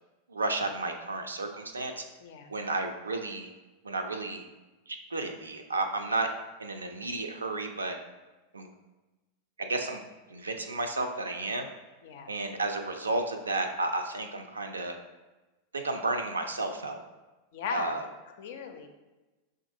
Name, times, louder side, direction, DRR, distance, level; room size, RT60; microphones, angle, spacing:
voice 1, 0.3-2.0 2.5-3.5 3.8-4.4 4.9-6.3 6.6-8.0 8.5-8.7 9.6-10.0 10.3-11.7 12.3-14.9 15.7-17.0 17.7-18.0, right 2 dB, 75° right, 5 dB, 0.4 m, -32 dB
voice 2, 2.2-2.5 12.0-12.3 17.5-18.0 18.4-18.9, left 6 dB, 55° left, 5 dB, 0.4 m, -37 dB
6.0 x 2.5 x 2.6 m, 1.1 s
figure-of-eight pair, 90°, 0 cm